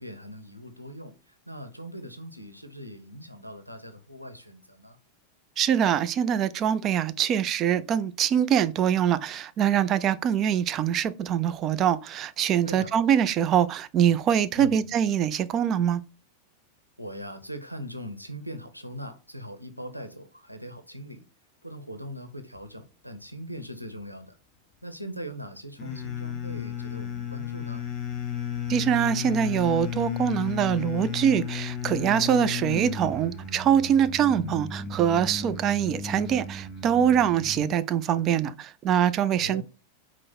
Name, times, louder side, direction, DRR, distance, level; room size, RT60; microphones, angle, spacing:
voice 1, 0.0-5.0 12.6-13.0 14.6-14.9 17.0-21.2 21.6-24.4 24.8-27.8 39.3-39.6, equal, 90° left, 0.5 m, -40 dB
voice 2, 5.6-16.0 28.7-39.6, right 9 dB, 30° right, 0.3 m, -24 dB
sound 1, 25.8-37.7, left 7 dB, 30° left, 1.0 m, -34 dB
4.5 x 2.0 x 4.3 m
figure-of-eight pair, 90°, 0 cm